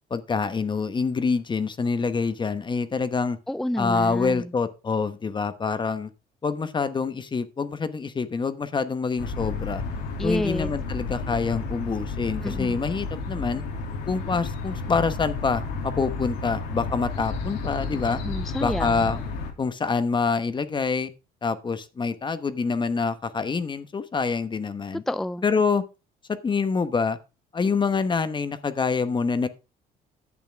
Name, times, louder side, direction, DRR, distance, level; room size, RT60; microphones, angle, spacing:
voice 1, 0.1-3.4 3.8-6.1 6.4-9.8 10.2-13.6 14.1-18.2 18.6-19.2 19.6-21.1 21.4-25.0 25.4-25.8 26.3-27.2 27.5-29.5, left 5 dB, 30° left, 1.1 m, -26 dB
voice 2, 3.5-4.5 10.2-10.7 12.4-12.8 18.1-19.1 25.1-25.4, left 1 dB, ahead, 0.4 m, -29 dB
sound 1, 9.2-19.5, left 4 dB, 85° left, 2.7 m, -32 dB
10.5 x 8.4 x 3.5 m
cardioid pair, 110°, 17 cm